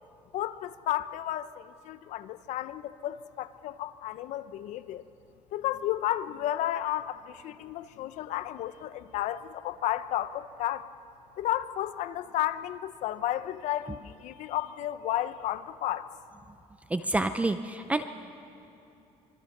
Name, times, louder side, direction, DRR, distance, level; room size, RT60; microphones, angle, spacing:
voice 1, 0.3-5.0 5.5-10.9 11.4-16.1, left 13 dB, 70° left, 13 dB, 0.9 m, -32 dB
voice 2, 16.9-18.0, right 2 dB, 10° right, 10 dB, 0.6 m, -28 dB
26.0 x 23.0 x 6.7 m, 2.8 s
cardioid pair, 155°, 13 cm